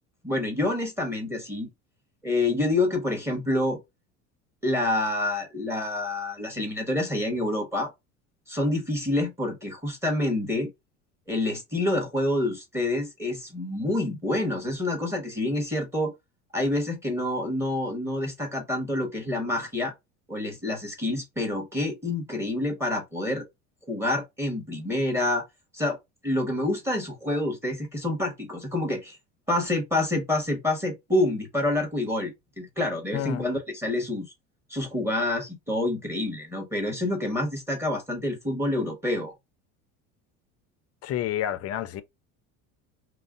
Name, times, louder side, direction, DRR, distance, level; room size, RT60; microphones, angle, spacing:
voice 1, 0.2-1.7 2.2-3.8 4.6-7.9 8.5-10.7 11.3-16.1 16.5-19.9 20.3-23.4 23.9-25.4 25.7-26.0 26.2-29.2 29.5-34.3 34.7-39.3, left 1 dB, 5° right, 1.0 m, -27 dB
voice 2, 33.1-33.5 41.0-42.0, left 11 dB, 45° left, 0.5 m, -29 dB
2.4 x 2.1 x 3.5 m
supercardioid pair, 110°, 36 cm